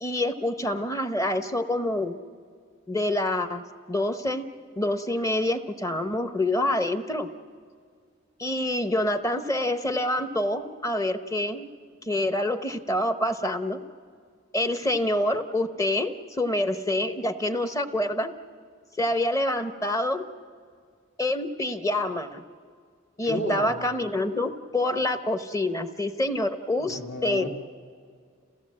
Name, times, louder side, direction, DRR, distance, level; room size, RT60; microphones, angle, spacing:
voice 1, 0.0-2.2 2.9-4.4 4.7-7.3 8.4-11.7 12.0-13.8 14.5-18.3 19.0-20.2 21.2-22.4 23.2-27.5, left 1 dB, 15° left, 9 dB, 0.8 m, -27 dB
voice 2, 23.2-23.9 26.8-27.5, left 1 dB, 55° left, 2 dB, 1.9 m, -32 dB
28.5 x 16.5 x 7.5 m, 2.1 s
head